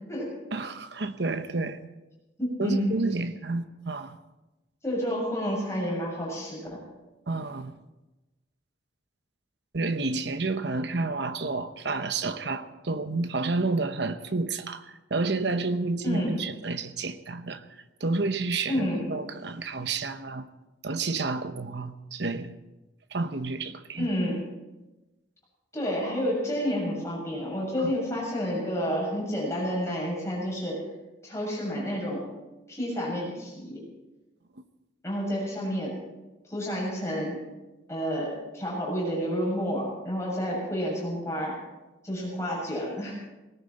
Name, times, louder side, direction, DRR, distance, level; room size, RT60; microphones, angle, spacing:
voice 1, 0.5-1.8 2.6-4.2 7.3-7.7 9.7-17.6 18.0-20.5 20.8-22.5 23.1-24.1 27.8-27.9, right 3 dB, 60° right, 10 dB, 0.9 m, -30 dB
voice 2, 2.4-2.9 4.8-6.6 16.0-16.3 18.7-19.0 23.9-24.4 25.7-30.8 31.2-32.2 32.7-33.8 35.0-35.9 36.5-37.4 37.9-41.5 42.0-43.1, equal, 15° left, -4 dB, 7.0 m, -29 dB
19.0 x 16.5 x 4.3 m, 1.1 s
head